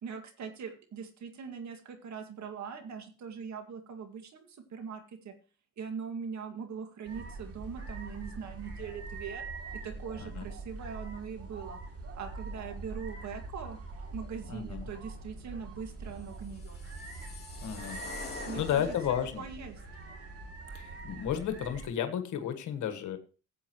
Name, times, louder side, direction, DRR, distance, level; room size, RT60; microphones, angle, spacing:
voice 1, 0.0-5.3 5.8-9.4 9.7-11.8 12.1-13.8 14.1-16.8 18.5-19.0 19.4-19.8, right 6 dB, 65° right, 6 dB, 2.2 m, -41 dB
sound 1, 7.0-21.9, right 3 dB, 50° right, 2.8 m, -43 dB
voice 2, 14.5-14.9 17.6-18.0 18.6-19.4 20.7-23.2, left 9 dB, 80° left, 7 dB, 1.4 m, -33 dB
sound 2, 16.3-19.5, left 4 dB, 35° left, 3.1 m, -45 dB
15.5 x 8.5 x 3.0 m, 0.36 s
cardioid pair, 90°, 30 cm